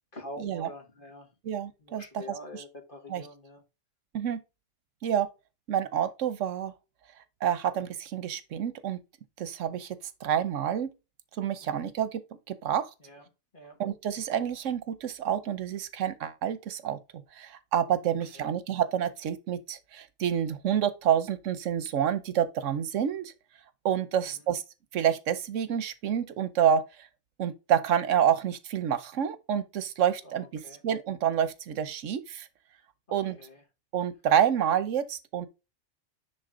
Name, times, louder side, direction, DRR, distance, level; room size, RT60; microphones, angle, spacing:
voice 1, 0.1-1.3 1.8-3.6 11.6-11.9 13.0-13.2 13.5-13.8 18.0-18.5 24.1-24.4 30.2-30.8 33.1-33.6, left 1 dB, 45° left, 2.0 m, -46 dB
voice 2, 1.4-2.2 2.5-2.6 3.1-3.2 4.1-4.4 5.0-5.3 5.7-6.7 7.4-9.0 9.4-10.9 11.4-12.2 12.5-12.9 13.8-17.0 17.3-23.3 23.8-24.6 24.9-27.1 27.4-30.5 30.8-32.5 33.1-33.4 33.9-35.5, right 9 dB, 85° right, 1.2 m, -28 dB
10.0 x 3.8 x 3.7 m
omnidirectional pair, 1.2 m